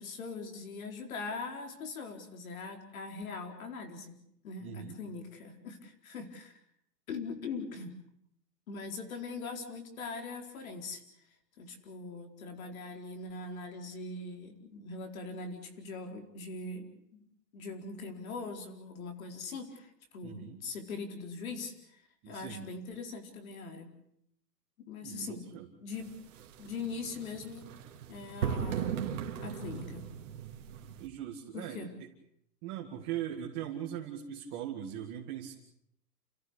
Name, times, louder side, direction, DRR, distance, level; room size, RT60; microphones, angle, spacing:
voice 1, 0.0-4.2 4.4-6.6 7.1-7.9 8.7-11.0 11.6-17.2 17.5-23.9 24.8-25.4 25.8-26.1 26.6-27.7 28.1-29.0 29.4-30.0 31.5-31.9, left 4 dB, 55° left, 5 dB, 4.6 m, -41 dB
voice 2, 4.6-5.0 20.2-20.6 22.2-22.7 25.0-25.7 31.0-32.1 32.6-35.5, right 10 dB, 25° right, 1 dB, 1.9 m, -40 dB
sound 1, 25.9-31.1, right 8 dB, 50° right, 2.4 m, -38 dB
29.5 x 15.0 x 8.3 m, 0.75 s
hypercardioid pair, 165°, 49 cm